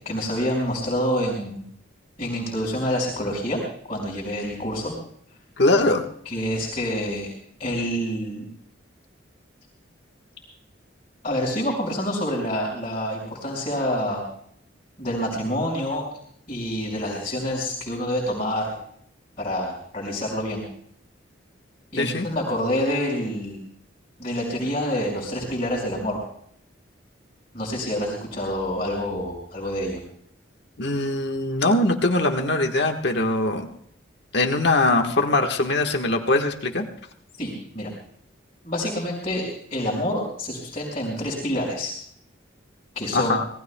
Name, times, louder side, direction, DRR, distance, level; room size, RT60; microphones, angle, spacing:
voice 1, 0.0-1.6 2.2-3.6 3.9-4.9 6.2-7.3 7.6-8.5 11.2-14.2 15.0-16.1 16.5-18.8 19.4-20.6 21.9-23.6 24.2-26.2 27.5-30.0 37.4-37.9 38.6-41.9 42.9-43.4, equal, 30° left, -4 dB, 4.9 m, -27 dB
voice 2, 5.6-6.0 22.0-22.3 30.8-33.7 34.3-36.8 43.1-43.4, left 2 dB, 60° left, 3 dB, 1.4 m, -21 dB
26.0 x 18.5 x 2.3 m, 0.67 s
head